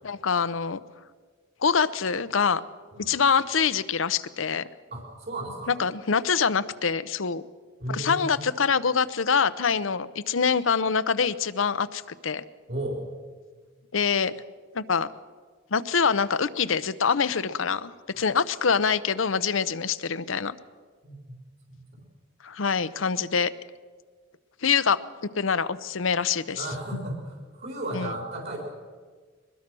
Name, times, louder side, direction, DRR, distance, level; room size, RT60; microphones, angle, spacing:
voice 1, 0.0-0.8 1.6-2.6 3.1-4.7 5.7-7.4 7.9-12.4 13.9-14.3 14.7-15.1 15.7-20.6 22.4-23.5 24.6-25.0 25.3-26.7 27.9-28.1, left 6 dB, 80° left, 14 dB, 0.8 m, -25 dB
voice 2, 4.9-5.7 7.8-8.4 12.7-13.0 21.0-21.3 26.5-28.6, right 1 dB, 55° right, 0 dB, 4.2 m, -34 dB
22.5 x 20.5 x 6.2 m, 1.5 s
head